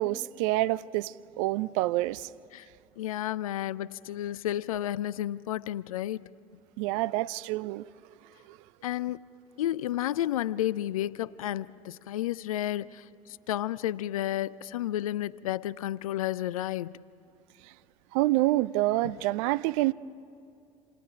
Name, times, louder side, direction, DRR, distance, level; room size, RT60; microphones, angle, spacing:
voice 1, 0.0-2.3 6.8-7.9 8.5-8.6 18.1-19.9, right 17 dB, 65° right, 0.5 m, -27 dB
voice 2, 3.0-6.2 8.8-9.3 9.6-17.0 19.0-19.1, left 13 dB, 80° left, 0.5 m, -32 dB
28.0 x 27.5 x 5.1 m
hypercardioid pair, 60°, 18 cm